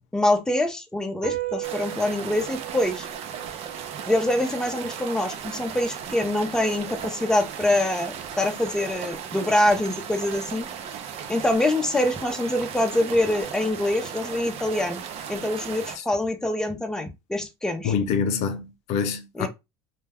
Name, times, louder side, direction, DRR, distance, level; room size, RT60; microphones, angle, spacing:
voice 1, 0.1-3.1 4.1-10.7 11.3-15.0 15.3-17.9 19.3-19.5, left 1 dB, 5° left, 0.6 m, -25 dB
sound 1, 1.2-7.9, right 15 dB, 75° right, 1.0 m, -39 dB
sound 2, 1.6-16.0, right 8 dB, 60° right, 0.6 m, -36 dB
voice 2, 17.8-19.5, left 6 dB, 70° left, 0.5 m, -26 dB
2.2 x 2.2 x 3.3 m
supercardioid pair, 100°, 12 cm